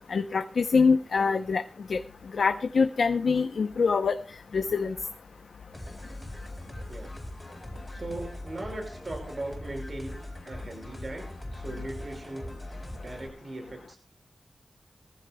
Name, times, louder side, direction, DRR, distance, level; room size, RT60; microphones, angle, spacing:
voice 1, 0.1-1.6 1.9-2.0 2.3-4.2 4.5-4.9, left 5 dB, 85° left, 8 dB, 0.7 m, -24 dB
sound 1, 5.7-13.3, left 1 dB, 10° left, 4.4 m, -41 dB
voice 2, 7.9-11.2 11.5-12.6 13.0-14.0, right 2 dB, 50° right, 2 dB, 5.7 m, -39 dB
22.0 x 15.0 x 2.3 m, 0.36 s
wide cardioid pair, 75°, 0 cm